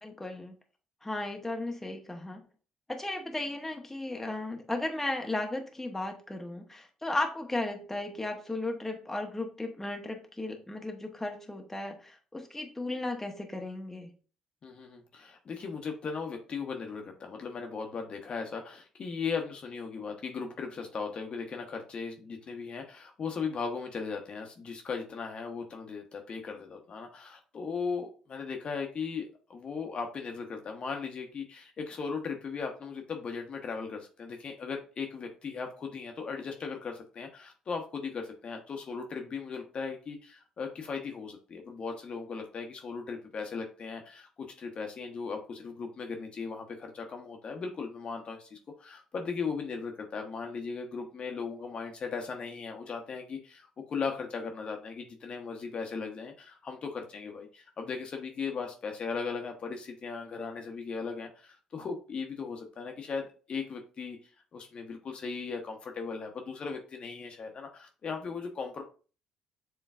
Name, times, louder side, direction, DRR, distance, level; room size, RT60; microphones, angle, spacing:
voice 1, 0.0-0.5 1.0-2.4 2.9-14.1, left 2 dB, 10° left, 3 dB, 0.9 m, -35 dB
voice 2, 14.6-64.2 64.5-68.8, left 5 dB, 45° left, 3 dB, 0.9 m, -37 dB
7.1 x 3.1 x 2.4 m, 0.38 s
hypercardioid pair, 50°, 2 cm